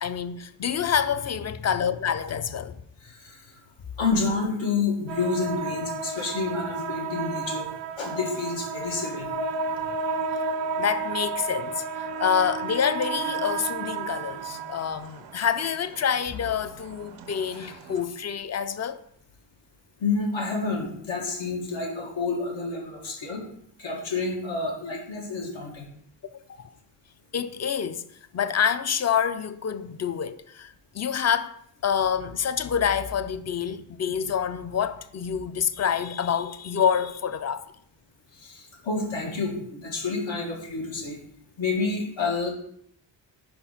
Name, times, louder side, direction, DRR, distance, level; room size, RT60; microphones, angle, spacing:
voice 1, 0.0-2.8 10.8-19.0 26.6-26.7 27.3-28.0 28.3-31.6 31.8-37.6, left 7 dB, 40° left, 0.4 m, -27 dB
voice 2, 3.0-3.5 4.0-7.7 8.0-9.3 20.0-23.4 23.8-25.9 38.3-41.2 41.6-42.5, left 4 dB, 85° left, 1.8 m, -29 dB
sound 1, 5.1-18.0, right 4 dB, 90° right, 0.7 m, -33 dB
5.3 x 4.5 x 5.6 m
wide cardioid pair, 110°, 44 cm